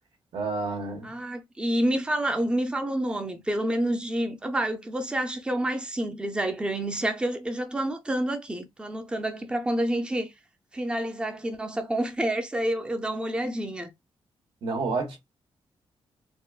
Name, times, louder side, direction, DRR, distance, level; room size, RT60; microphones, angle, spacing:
voice 1, 0.3-1.1 14.6-15.2, right 3 dB, 70° right, 1.4 m, -29 dB
voice 2, 1.0-10.3 10.7-13.9, right 1 dB, 10° right, 0.5 m, -28 dB
4.2 x 2.3 x 2.3 m
wide cardioid pair, 170°, 10 cm